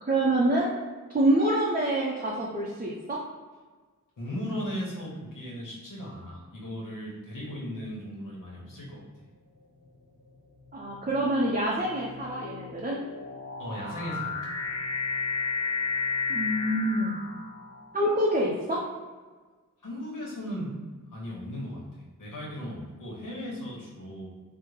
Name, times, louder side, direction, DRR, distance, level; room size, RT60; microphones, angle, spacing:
voice 1, 0.0-0.7 1.1-3.2 10.7-13.0 16.3-17.2 17.9-18.8, right 1 dB, 25° right, -4 dB, 0.5 m, -26 dB
voice 2, 4.2-9.0 13.6-14.4 19.8-20.7 21.1-24.3, equal, 65° left, -4 dB, 1.0 m, -37 dB
sound 1, 8.6-9.0 9.8-18.0, left 4 dB, 50° left, 0.7 m, -33 dB
3.5 x 2.1 x 3.1 m, 1.4 s
wide cardioid pair, 50°, 34 cm